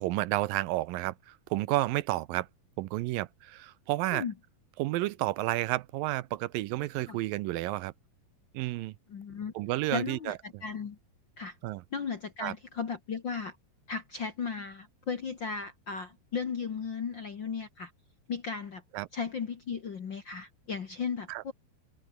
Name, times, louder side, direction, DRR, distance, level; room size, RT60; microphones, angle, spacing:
voice 1, 0.0-2.5 2.8-4.2 4.8-7.9 8.5-8.9 9.6-10.6 11.6-11.8 12.4-12.5 18.9-19.1 21.3-21.4, right 17 dB, 80° right, 2.3 m, -31 dB
voice 2, 9.1-9.5 9.9-11.0 11.4-11.5 11.9-13.5 13.9-17.9 18.3-18.8 19.1-21.5, left 5 dB, 50° left, 1.5 m, -36 dB
open air
omnidirectional pair, 4.2 m